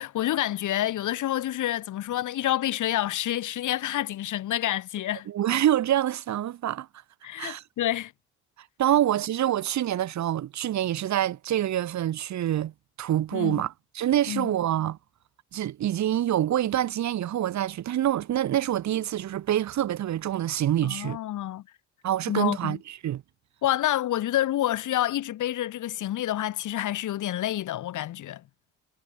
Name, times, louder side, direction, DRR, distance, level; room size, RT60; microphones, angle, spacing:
voice 1, 0.0-5.3 7.2-8.1 13.3-13.6 14.3-14.5 20.8-21.6 22.3-22.8 23.6-28.4, left 13 dB, 80° left, 6.9 m, -28 dB
voice 2, 5.3-6.9 7.4-7.6 8.8-12.7 13.0-15.0 15.5-21.2 22.0-23.2, right 12 dB, 65° right, 1.6 m, -26 dB
cardioid pair, 90°, 30 cm